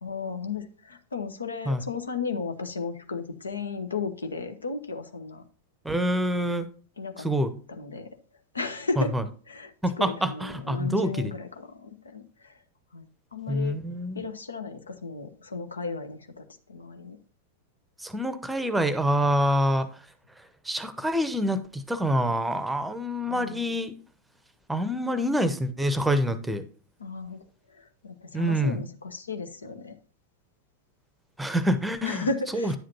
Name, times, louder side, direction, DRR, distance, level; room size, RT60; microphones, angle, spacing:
voice 1, 0.0-5.4 7.0-7.3 7.7-8.1 8.5-9.2 9.5-12.6 12.9-13.8 14.1-17.2 23.3-23.7 27.0-30.0 32.0-32.8, left 4 dB, 75° left, 9 dB, 0.9 m, -35 dB
voice 2, 5.8-6.7 7.2-7.5 9.0-9.2 9.8-11.3 13.5-14.2 18.0-19.9 20.6-23.9 24.7-26.6 28.3-28.8 31.4-32.3 32.5-32.8, equal, 5° right, 12 dB, 0.8 m, -26 dB
10.0 x 7.6 x 2.8 m, 0.43 s
figure-of-eight pair, 90°, 0 cm